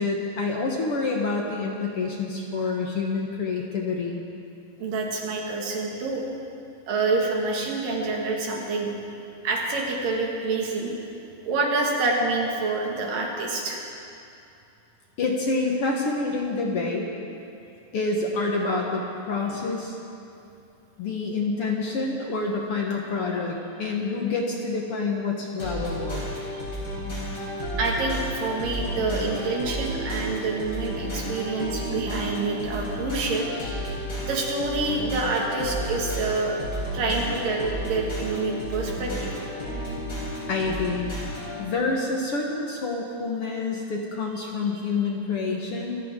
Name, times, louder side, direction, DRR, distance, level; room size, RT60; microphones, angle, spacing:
voice 1, 0.0-4.2 15.2-17.1 17.9-20.0 21.0-26.3 40.5-46.0, left 3 dB, 55° left, 0 dB, 1.8 m, -27 dB
voice 2, 4.8-6.3 6.9-8.9 9.4-10.9 11.5-13.8 27.8-33.5 34.2-36.6 36.9-39.4, right 3 dB, 90° right, -1 dB, 3.7 m, -27 dB
sound 1, 25.6-41.6, equal, 35° left, 4.7 m, -32 dB
25.5 x 14.5 x 3.8 m, 2.7 s
omnidirectional pair, 3.8 m